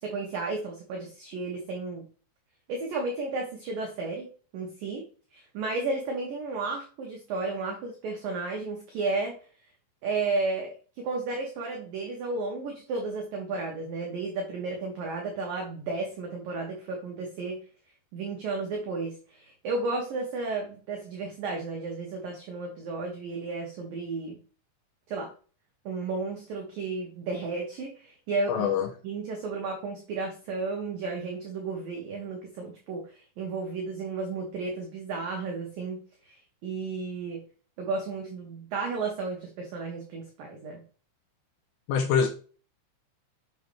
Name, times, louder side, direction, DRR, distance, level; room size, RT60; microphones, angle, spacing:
voice 1, 0.0-2.0 2.7-4.3 4.5-5.0 5.3-9.3 10.0-17.6 18.1-24.4 25.1-25.3 25.9-28.7 29.0-36.0 36.3-37.4 37.8-40.8, right 3 dB, 65° right, 0 dB, 2.3 m, -33 dB
voice 2, 28.5-28.9 41.9-42.3, left 7 dB, 75° left, 3 dB, 2.8 m, -24 dB
7.9 x 6.4 x 3.4 m, 0.39 s
omnidirectional pair, 5.7 m